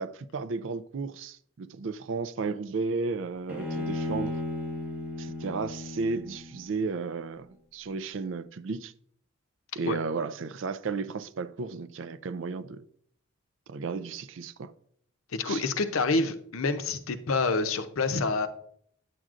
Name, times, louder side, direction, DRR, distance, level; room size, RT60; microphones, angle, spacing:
voice 1, 0.0-4.4 5.2-8.9 9.8-12.8 13.7-14.7 15.5-15.6, right 4 dB, 65° right, 0.4 m, -33 dB
Bowed string instrument, 3.5-6.8, left 2 dB, 10° right, 1.5 m, -35 dB
voice 2, 15.3-18.5, left 3 dB, 90° left, 0.7 m, -27 dB
9.3 x 7.5 x 2.5 m
head